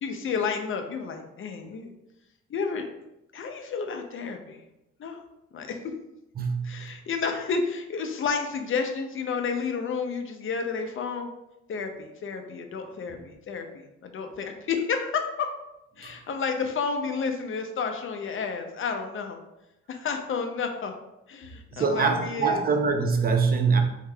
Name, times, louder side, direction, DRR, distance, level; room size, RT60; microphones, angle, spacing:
voice 1, 0.0-1.9 2.5-2.9 3.3-4.6 5.0-5.2 5.5-5.8 6.6-11.3 11.7-15.5 16.0-19.4 19.9-20.9 21.3-22.6, left 5 dB, 45° left, 5 dB, 0.5 m, -31 dB
voice 2, 6.4-6.9 13.1-13.2 16.0-16.1 21.7-23.8, right 4 dB, 30° right, 4 dB, 0.5 m, -24 dB
3.6 x 3.3 x 2.2 m, 0.90 s
cardioid pair, 90°, 30 cm